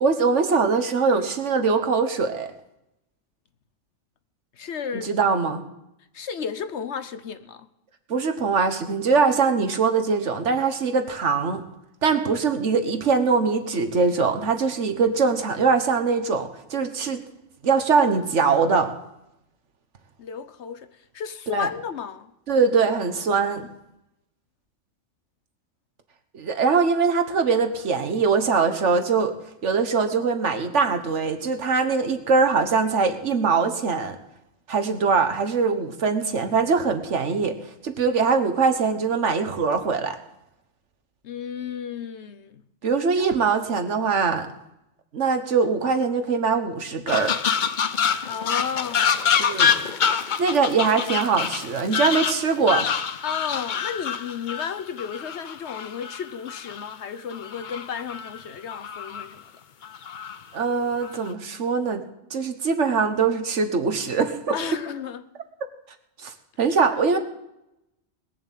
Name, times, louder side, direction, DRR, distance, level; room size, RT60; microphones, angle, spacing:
voice 1, 0.0-2.5 5.0-5.6 8.1-11.6 12.0-17.2 17.6-18.9 21.5-21.7 22.5-23.7 26.3-29.3 29.6-34.2 34.7-37.5 37.8-40.2 42.8-44.5 45.1-47.4 49.4-49.7 50.4-52.9 60.5-62.0 62.3-64.6 66.2-67.2, right 5 dB, 70° right, 1.5 m, -22 dB
voice 2, 4.6-5.1 6.1-7.7 20.2-20.9 21.1-22.3 41.2-42.6 43.2-43.3 48.3-49.2 53.2-59.4 64.5-65.3, left 7 dB, 65° left, 1.1 m, -33 dB
sound 1, 47.1-56.8 57.3-58.4 58.7-59.3 59.8-60.4 61.0-61.3, left 7 dB, 45° left, 0.7 m, -26 dB
20.0 x 7.3 x 7.4 m
omnidirectional pair, 1.3 m